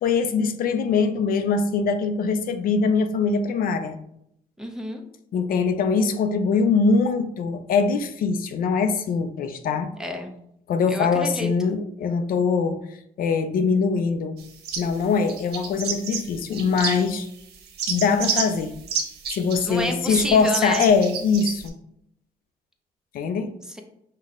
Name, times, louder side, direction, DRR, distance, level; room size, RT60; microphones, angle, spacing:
voice 1, 0.0-4.0 5.3-9.9 10.7-12.8 13.2-14.4 14.8-17.3 17.9-18.8 19.3-21.7 23.1-23.5, left 5 dB, 60° left, 8 dB, 0.4 m, -22 dB
voice 2, 4.6-5.0 10.0-10.3 10.9-11.5 19.6-20.9 23.7-23.8, equal, 5° right, 3 dB, 0.6 m, -29 dB
sound 1, 14.4-15.0 15.3-17.3 17.5-21.7, right 6 dB, 80° right, 0.7 m, -30 dB
5.3 x 2.2 x 3.6 m, 0.74 s
cardioid pair, 100°, 16 cm